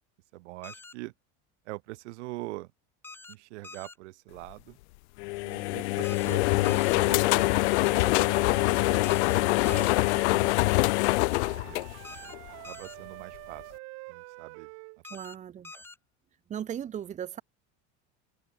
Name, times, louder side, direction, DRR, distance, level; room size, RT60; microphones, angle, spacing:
voice 1, 0.3-1.1 1.7-2.7 3.3-4.8 5.4-8.8 9.4-11.4 11.6-11.8 12.6-13.7 14.1-14.7 15.7-15.8, right 21 dB, 80° right, 7.1 m, -44 dB
sound 1, 0.6-0.9 3.0-3.3 3.6-4.0 6.0-6.3 6.6-7.0 9.0-9.4 9.6-10.0 12.0-12.4 12.6-13.0 15.0-15.4 15.6-16.0, left 3 dB, 5° left, 1.4 m, -46 dB
sound 2, 5.2-12.5, left 24 dB, 75° left, 1.0 m, -24 dB
Wind instrument woodwind instrument, 6.9-10.5 11.2-15.0, right 27 dB, 45° right, 3.3 m, -46 dB
voice 2, 15.1-15.7 16.5-17.4, right 9 dB, 20° right, 2.3 m, -37 dB
open air
cardioid pair, 175°, 34 cm